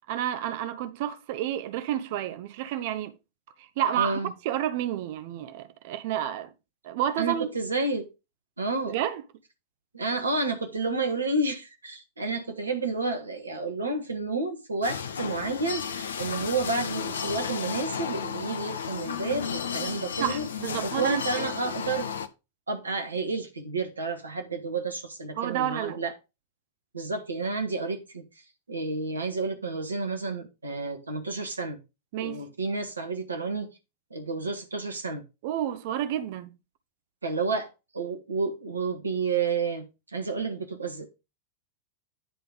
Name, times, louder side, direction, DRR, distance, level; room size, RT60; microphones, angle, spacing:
voice 1, 0.1-3.1 3.6-6.5 6.8-7.5 8.9-9.2 20.2-21.5 25.4-26.0 32.1-32.4 35.4-36.5, right 11 dB, 50° right, 0.7 m, -30 dB
voice 2, 4.0-4.3 7.2-8.1 8.6-8.9 9.9-20.4 20.8-22.1 22.7-26.1 26.9-28.2 28.7-31.8 32.2-33.7 34.1-35.2 37.2-37.7 37.9-39.8 40.1-41.1, right 3 dB, 75° right, 1.5 m, -30 dB
sound 1, 14.8-22.3, left 7 dB, 65° left, 0.6 m, -33 dB
10.0 x 3.4 x 5.2 m
figure-of-eight pair, 90°, 0 cm